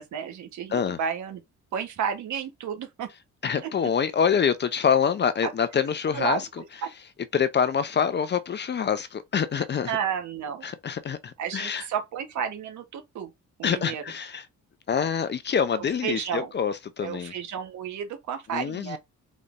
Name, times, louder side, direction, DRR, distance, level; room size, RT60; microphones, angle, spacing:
voice 1, 0.0-1.4 1.7-3.1 3.6-3.7 5.4-5.5 6.1-6.4 6.8-6.9 9.9-10.6 11.4-13.3 13.6-14.0 16.0-16.5 17.0-19.0, right 7 dB, 70° right, 1.1 m, -31 dB
voice 2, 3.4-6.4 7.3-10.0 10.6-11.9 13.6-14.5 14.9-17.3 18.5-19.0, left 7 dB, 35° left, 0.5 m, -26 dB
4.1 x 3.4 x 2.5 m
cardioid pair, 90°, 30 cm